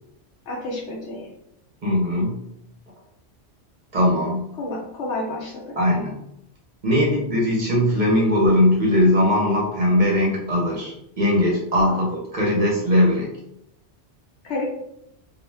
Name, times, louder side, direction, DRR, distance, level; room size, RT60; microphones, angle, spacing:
voice 1, 0.5-1.3 4.6-5.8 11.8-12.0 14.4-14.7, left 2 dB, 75° left, -1 dB, 1.0 m, -30 dB
voice 2, 1.8-2.4 3.9-4.5 5.8-6.2 6.8-13.3, left 1 dB, 50° right, -3 dB, 0.7 m, -20 dB
2.4 x 2.1 x 3.2 m, 0.78 s
omnidirectional pair, 1.2 m